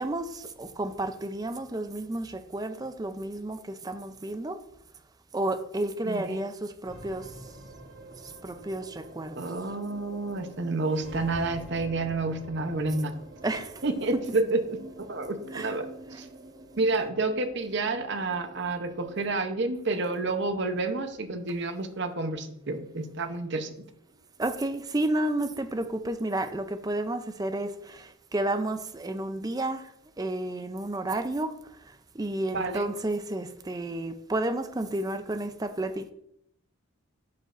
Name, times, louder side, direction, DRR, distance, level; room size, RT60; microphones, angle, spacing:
voice 1, 0.0-4.6 5.3-7.5 8.2-9.5 13.4-13.8 14.1-14.4 15.5-15.8 16.1-16.2 24.4-29.9 30.2-31.5 31.8-36.1, right 1 dB, 20° right, 8 dB, 0.4 m, -31 dB
voice 2, 6.0-6.4 9.3-13.2 13.8-16.3 16.8-23.8 32.5-32.9, right 3 dB, 55° right, 7 dB, 0.8 m, -30 dB
sound 1, 6.8-25.3, right 1 dB, 75° right, 2.5 m, -48 dB
10.5 x 5.3 x 2.5 m, 0.75 s
head